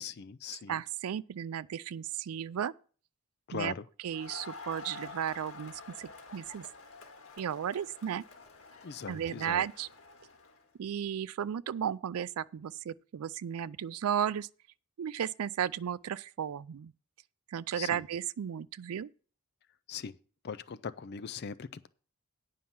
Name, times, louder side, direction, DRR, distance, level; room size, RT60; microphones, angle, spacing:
voice 1, 0.0-0.8 3.5-3.8 8.8-9.6 17.7-18.0 19.9-20.1 20.4-21.9, left 6 dB, 45° left, 0.4 m, -40 dB
voice 2, 0.7-2.7 3.5-3.7 4.0-5.7 6.0-6.6 7.4-8.2 9.1-9.9 10.8-14.5 15.0-16.9 17.5-19.1, right 9 dB, 75° right, 0.4 m, -34 dB
Crowd, 4.1-10.6, left 3 dB, 65° left, 1.8 m, -49 dB
9.4 x 5.6 x 7.2 m
head